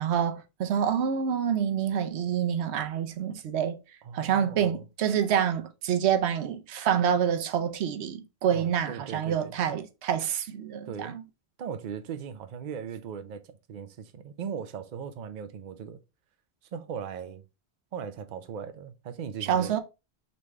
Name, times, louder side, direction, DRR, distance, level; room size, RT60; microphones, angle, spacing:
voice 1, 0.0-3.8 4.1-11.2 19.4-19.8, right 8 dB, 85° right, 0.9 m, -27 dB
voice 2, 4.0-4.8 8.5-9.8 10.8-11.2 11.6-16.0 16.7-17.4 17.9-19.7, right 7 dB, 55° right, 0.6 m, -38 dB
4.1 x 3.2 x 3.4 m
omnidirectional pair, 1.1 m